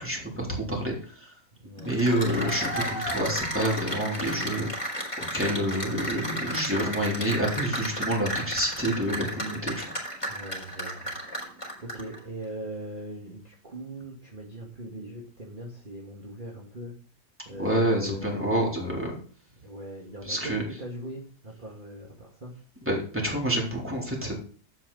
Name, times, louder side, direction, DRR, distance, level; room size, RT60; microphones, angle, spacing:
voice 1, 0.0-1.3 1.8-9.9 17.5-19.2 20.2-20.6 22.9-24.3, right 1 dB, 5° right, -2 dB, 3.8 m, -28 dB
voice 2, 1.6-2.0 10.3-16.9 17.5-18.5 19.6-22.6, right 1 dB, 30° right, -2 dB, 2.3 m, -40 dB
Cheering / Applause, 1.8-12.2, equal, 15° left, 4.3 m, -33 dB
12.0 x 8.7 x 4.1 m, 0.43 s
omnidirectional pair, 1.8 m